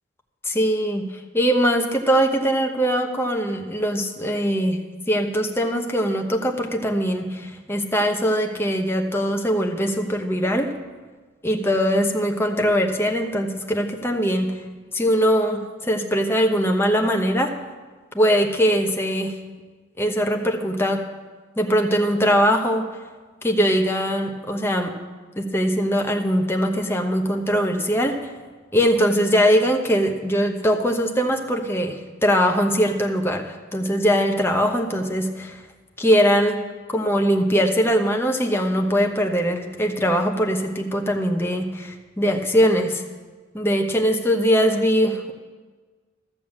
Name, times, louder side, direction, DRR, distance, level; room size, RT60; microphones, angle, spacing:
voice 1, 0.4-1.0 1.3-4.8 5.1-10.7 11.4-14.5 14.9-17.5 18.1-19.3 20.0-21.0 21.6-22.9 23.4-24.9 25.4-28.2 28.7-35.6 36.0-36.6 36.9-43.0 43.5-45.3, equal, 15° left, 2 dB, 1.0 m, -21 dB
13.5 x 7.1 x 7.2 m, 1.4 s
head